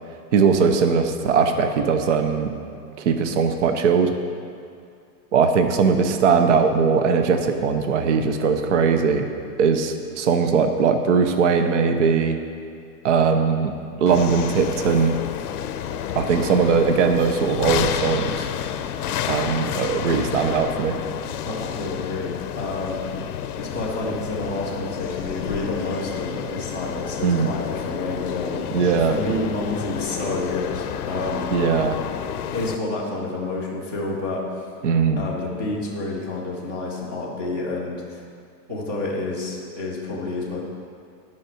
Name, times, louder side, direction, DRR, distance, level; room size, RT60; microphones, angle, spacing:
voice 1, 0.3-2.5 3.0-4.1 5.3-9.3 9.6-12.4 13.0-13.7 14.0-15.2 16.2-18.5 19.3-21.0 27.2-27.5 28.7-29.1 31.5-32.0 34.8-35.3, right 5 dB, 50° right, 7 dB, 0.7 m, -20 dB
sound 1, 14.1-32.8, left 9 dB, 65° left, 0.7 m, -30 dB
voice 2, 21.3-23.0 23.6-31.5 32.5-34.7 35.2-38.2 38.7-40.6, left 2 dB, 10° right, -7 dB, 0.6 m, -29 dB
10.5 x 5.8 x 6.4 m, 2.3 s
supercardioid pair, 180°, 49 cm